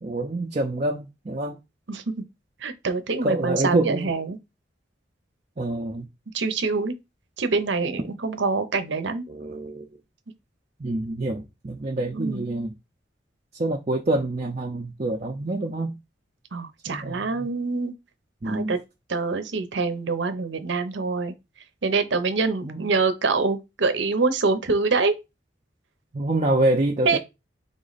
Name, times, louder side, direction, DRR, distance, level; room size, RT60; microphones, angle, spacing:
voice 1, 0.0-1.6 3.2-4.1 5.6-6.1 9.3-9.9 10.8-12.7 13.5-15.9 16.9-17.5 18.4-18.8 22.6-22.8 26.1-27.2, right 2 dB, 35° right, 0.5 m, -26 dB
voice 2, 2.6-4.4 6.3-6.9 7.4-9.2 12.1-12.4 16.5-17.9 18.4-18.8 19.1-21.3 21.8-25.2 27.0-27.2, right 4 dB, 85° right, 0.7 m, -25 dB
3.8 x 3.2 x 4.0 m
head